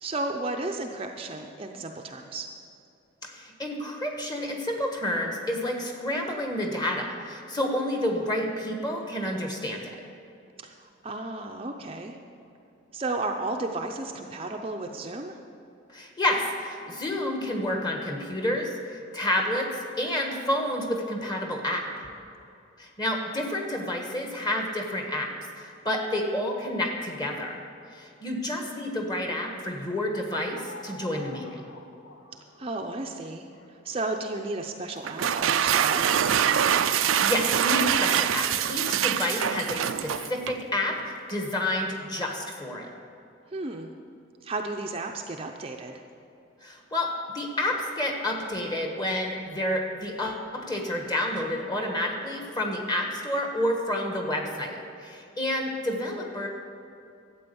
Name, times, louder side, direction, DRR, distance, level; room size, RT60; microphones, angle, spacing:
voice 1, 0.0-2.5 10.6-12.2 12.9-15.4 32.6-33.5 33.8-36.3 43.5-43.9 44.4-46.0, right 2 dB, 30° right, 2 dB, 0.6 m, -33 dB
voice 2, 3.2-9.9 15.9-21.9 22.8-27.6 27.9-31.6 36.9-42.9 46.6-56.5, left 1 dB, 20° left, 2 dB, 1.4 m, -29 dB
Jurassic Ark, 29.9-34.5, left 2 dB, 85° left, 1.4 m, -49 dB
sound 1, 35.0-40.6, right 9 dB, 80° right, 0.4 m, -24 dB
12.5 x 8.5 x 7.0 m, 2.6 s
head